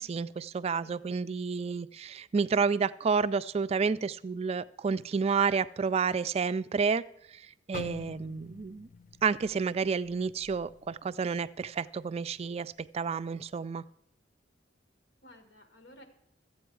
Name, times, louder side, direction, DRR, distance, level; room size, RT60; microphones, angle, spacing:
voice 1, 0.0-7.0 7.3-8.9 9.2-13.8, right 5 dB, 35° right, 15 dB, 0.3 m, -30 dB
sound 1, 7.7-11.8 12.1-12.4 13.0-13.4, left 6 dB, 45° left, 0.3 m, -47 dB
voice 2, 15.2-16.0, left 1 dB, 80° left, 6 dB, 1.6 m, -55 dB
13.5 x 8.5 x 4.7 m, 0.76 s
head